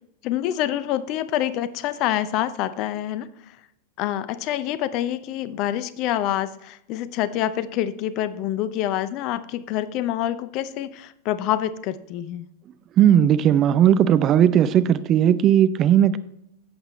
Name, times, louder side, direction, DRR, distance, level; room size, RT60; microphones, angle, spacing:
voice 1, 0.2-3.3 4.0-12.5, left 12 dB, 40° left, 14 dB, 0.6 m, -26 dB
voice 2, 13.0-16.2, right 10 dB, 30° right, 14 dB, 0.5 m, -17 dB
11.0 x 8.1 x 3.2 m, 0.77 s
figure-of-eight pair, 90°, 0 cm